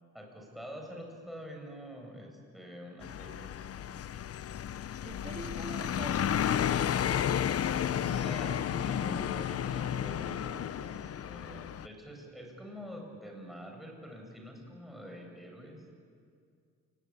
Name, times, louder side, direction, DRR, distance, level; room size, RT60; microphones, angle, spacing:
voice 1, 0.1-4.0 7.9-16.0, equal, ahead, 1 dB, 7.6 m, -46 dB
sound 1, 3.0-11.9, left 9 dB, 50° left, 0.9 m, -32 dB
voice 2, 5.0-6.7, right 2 dB, 20° right, 0 dB, 2.9 m, -44 dB
29.5 x 19.5 x 8.9 m, 2.2 s
cardioid pair, 90°, 30 cm